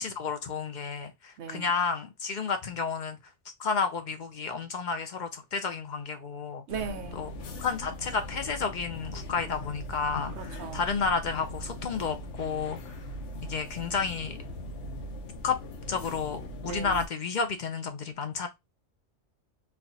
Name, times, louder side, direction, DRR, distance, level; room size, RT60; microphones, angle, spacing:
voice 1, 0.0-3.2 3.6-6.6 7.1-7.3 7.6-13.0 13.4-14.4 15.4-15.6 15.9-18.5, left 5 dB, 55° left, 0.5 m, -31 dB
voice 2, 1.4-1.7 6.7-7.4 10.3-10.8 16.6-17.0, right 6 dB, 70° right, 0.9 m, -38 dB
sound 1, 6.7-17.1, left 1 dB, 75° left, 1.0 m, -40 dB
4.1 x 2.3 x 2.6 m
omnidirectional pair, 1.2 m